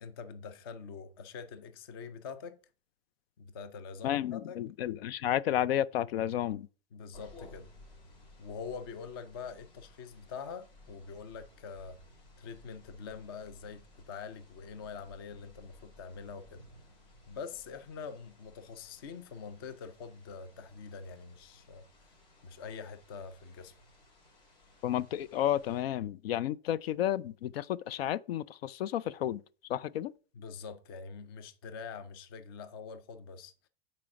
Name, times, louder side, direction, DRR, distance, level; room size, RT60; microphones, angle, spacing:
voice 1, 0.0-2.6 3.4-4.6 6.9-7.7 8.4-12.0 12.4-16.7 17.3-21.8 22.4-23.8 30.3-33.5, left 5 dB, 25° left, 0.4 m, -44 dB
voice 2, 4.0-6.7 24.8-29.4 29.7-30.1, left 11 dB, 75° left, 0.5 m, -32 dB
sound 1, 7.1-25.8, left 1 dB, 45° left, 2.9 m, -58 dB
7.6 x 4.3 x 5.8 m
supercardioid pair, 180°, 30 cm